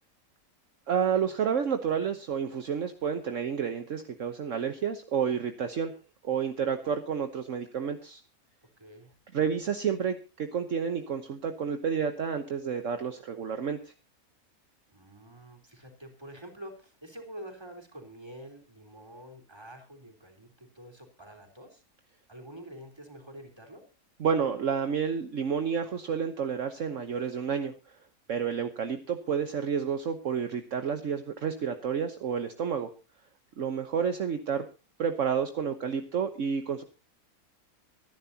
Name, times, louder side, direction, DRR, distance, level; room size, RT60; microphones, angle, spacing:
voice 1, 0.9-5.9 6.2-8.2 9.3-13.9 24.2-28.0 28.3-32.9 33.6-34.6 35.0-36.8, right 7 dB, 60° right, 7 dB, 1.3 m, -30 dB
voice 2, 8.8-9.1 14.9-21.8 22.3-23.8, right 1 dB, 15° right, 3 dB, 3.7 m, -47 dB
25.0 x 11.0 x 2.8 m, 0.31 s
omnidirectional pair, 1.5 m